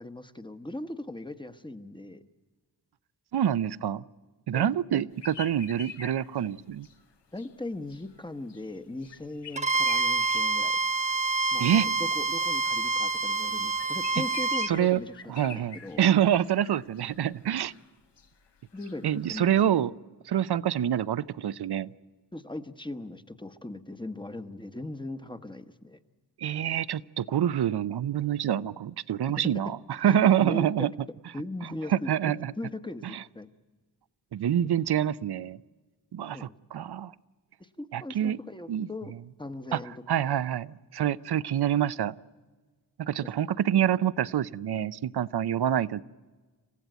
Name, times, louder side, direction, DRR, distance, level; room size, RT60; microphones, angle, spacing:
voice 1, 0.0-2.2 4.5-5.0 7.3-10.8 11.5-15.1 15.5-16.0 18.7-19.6 22.3-26.0 30.1-30.9 31.3-33.5 36.3-36.5 37.6-39.1 39.4-39.9, left 2 dB, 10° left, 10 dB, 1.0 m, -39 dB
voice 2, 3.3-4.0 4.5-6.9 11.6-11.9 14.6-15.0 15.3-17.7 19.0-19.9 20.3-21.9 26.4-30.9 31.9-32.5 33.1-33.2 34.3-35.6 36.1-37.1 37.9-38.4 38.7-38.9 39.7-39.8 40.1-42.1 43.0-46.0, right 10 dB, 70° right, 18 dB, 0.6 m, -26 dB
sound 1, 5.2-19.6, left 7 dB, 85° left, 1.4 m, -49 dB
Bowed string instrument, 9.6-14.7, right 3 dB, 15° right, 1.2 m, -27 dB
27.5 x 15.5 x 9.2 m, 1.4 s
wide cardioid pair, 85°, 41 cm